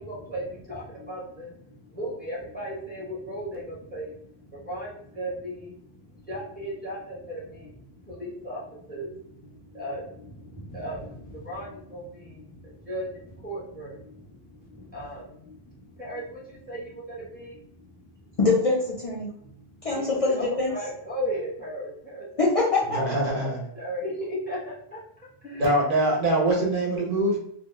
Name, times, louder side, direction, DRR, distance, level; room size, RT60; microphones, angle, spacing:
voice 1, 0.0-18.0 18.3-18.4 19.2-19.6 19.9-22.3 23.7-25.0 25.4-25.7, equal, 10° left, -5 dB, 0.7 m, -37 dB
voice 2, 18.4-19.3 19.8-20.7 22.4-23.0, left 3 dB, 45° left, -5 dB, 0.6 m, -23 dB
voice 3, 22.9-23.6 25.6-27.4, right 1 dB, 60° right, -1 dB, 0.9 m, -23 dB
2.2 x 2.2 x 3.0 m, 0.66 s
omnidirectional pair, 1.0 m